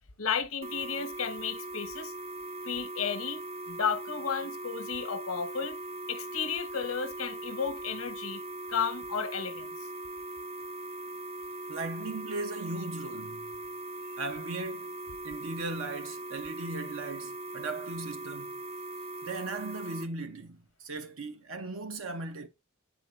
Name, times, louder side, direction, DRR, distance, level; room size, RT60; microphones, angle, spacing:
voice 1, 0.2-2.1 2.6-3.4 3.7-5.8 6.1-8.4 8.7-9.7, left 6 dB, 85° left, 0.9 m, -33 dB
sound 1, 0.6-20.0, right 2 dB, 30° right, 0.4 m, -40 dB
voice 2, 11.7-13.5 14.2-14.9 15.2-18.6 19.2-22.5, right 2 dB, 75° right, 0.8 m, -37 dB
8.3 x 3.8 x 3.1 m
head